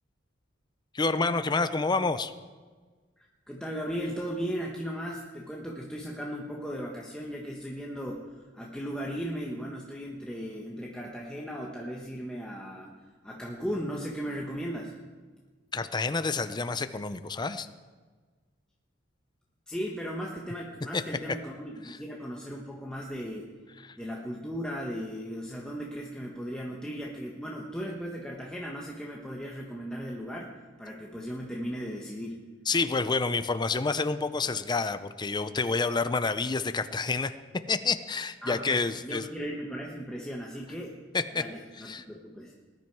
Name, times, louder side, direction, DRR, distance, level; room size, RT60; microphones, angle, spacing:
voice 1, 0.9-2.3 15.7-17.7 20.9-21.0 21.9-22.0 32.7-37.3 37.7-39.3 41.1-41.4 41.8-42.0, left 4 dB, 20° left, 11 dB, 0.5 m, -28 dB
voice 2, 3.5-12.9 13.2-15.0 19.7-23.5 24.0-30.5 30.8-32.4 38.4-41.0 41.3-42.5, equal, 5° left, -2 dB, 1.2 m, -37 dB
19.5 x 10.5 x 4.7 m, 1.4 s
head